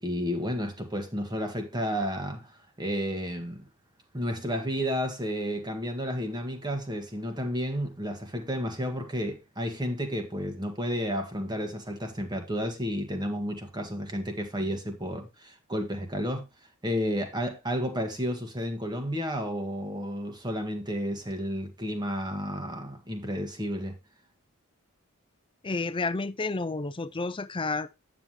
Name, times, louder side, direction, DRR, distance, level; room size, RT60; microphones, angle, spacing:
voice 1, 0.0-3.7 4.1-16.4 16.8-24.0, equal, 20° right, 1.7 m, -32 dB
voice 2, 25.6-28.0, left 3 dB, 25° left, 0.6 m, -31 dB
9.6 x 7.4 x 3.1 m
head